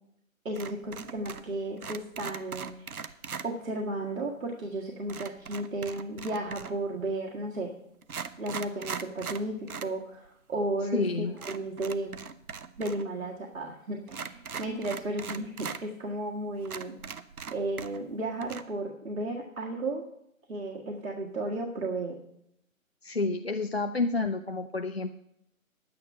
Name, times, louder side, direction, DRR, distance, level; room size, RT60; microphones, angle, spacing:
voice 1, 0.5-3.0 3.4-7.7 8.4-12.2 12.8-16.9 17.5-20.0 20.5-22.2, right 2 dB, 70° right, -1 dB, 1.8 m, -34 dB
sound 1, 0.6-1.5 1.8-3.5 5.1-6.9 7.5-7.6 8.0-9.9 10.3-10.4 11.4-13.0 13.3-13.4 14.1-15.8 16.3-16.4 16.6-18.1 18.4-18.6, right 6 dB, 85° right, 0.9 m, -40 dB
voice 2, 10.9-11.5 23.0-25.1, left 3 dB, 50° left, 7 dB, 0.5 m, -29 dB
9.9 x 9.4 x 5.6 m, 0.77 s
hypercardioid pair, 175°, 42 cm